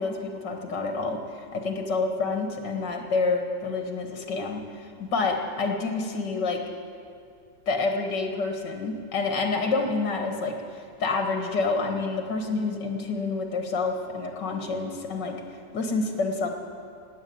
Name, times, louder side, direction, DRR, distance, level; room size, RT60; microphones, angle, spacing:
voice 1, 0.0-6.6 7.7-10.6 11.0-15.4 15.7-16.5, left 3 dB, 75° left, 3 dB, 2.2 m, -28 dB
17.5 x 8.1 x 9.5 m, 2.3 s
omnidirectional pair, 1.9 m